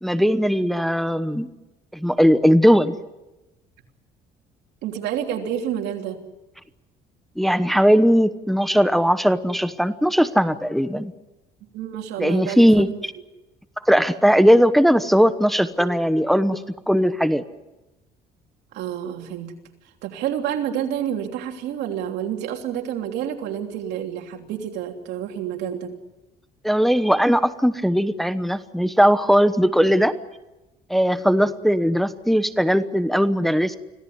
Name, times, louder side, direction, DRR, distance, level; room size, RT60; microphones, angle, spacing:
voice 1, 0.0-1.5 1.9-2.9 7.4-11.1 12.2-12.9 13.8-17.4 26.6-30.1 30.9-33.8, equal, ahead, 11 dB, 1.0 m, -19 dB
voice 2, 4.8-6.2 11.7-12.6 14.3-14.4 18.7-19.5 20.0-25.9, right 9 dB, 85° right, 4 dB, 3.2 m, -29 dB
26.0 x 17.0 x 9.6 m, 1.0 s
cardioid pair, 110°, 17 cm